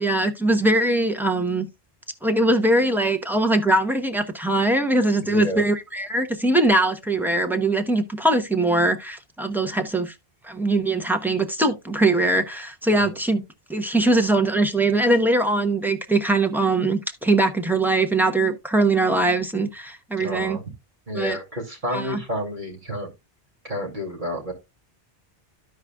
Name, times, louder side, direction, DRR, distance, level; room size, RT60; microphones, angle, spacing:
voice 1, 0.0-1.7 2.2-10.1 10.4-13.4 13.7-20.6 21.1-21.4 21.9-22.2, right 2 dB, ahead, 0.8 m, -21 dB
voice 2, 5.2-5.6 12.9-13.2 20.2-20.6 21.1-23.1 23.6-24.5, equal, 50° right, 2.8 m, -30 dB
14.0 x 4.8 x 2.3 m
omnidirectional pair, 1.1 m